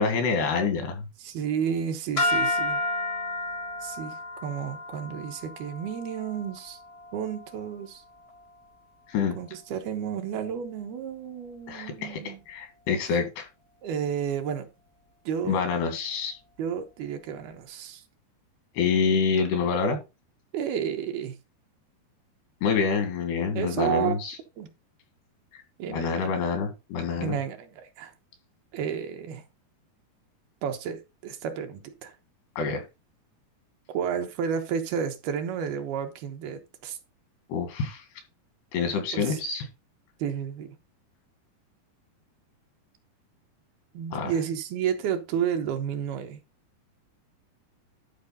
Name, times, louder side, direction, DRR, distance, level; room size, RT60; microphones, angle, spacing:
voice 1, 0.0-1.1 9.1-9.4 11.7-13.5 15.5-16.4 18.8-20.0 22.6-24.4 25.9-27.4 32.6-32.8 37.5-38.0 38.7-39.7 44.1-44.3, left 5 dB, 85° left, 4.0 m, -27 dB
voice 2, 1.2-2.8 3.8-6.8 7.1-8.0 9.4-12.4 13.8-14.7 15.3-15.7 16.6-18.0 20.5-21.3 23.6-24.2 24.6-24.7 25.8-26.3 27.2-28.1 28.7-29.4 30.6-32.1 33.9-37.0 39.1-39.4 40.2-40.8 43.9-46.4, right 8 dB, 75° right, 2.9 m, -31 dB
sound 1, 2.2-8.5, left 1 dB, 60° left, 0.6 m, -32 dB
12.0 x 4.7 x 3.9 m
omnidirectional pair, 4.6 m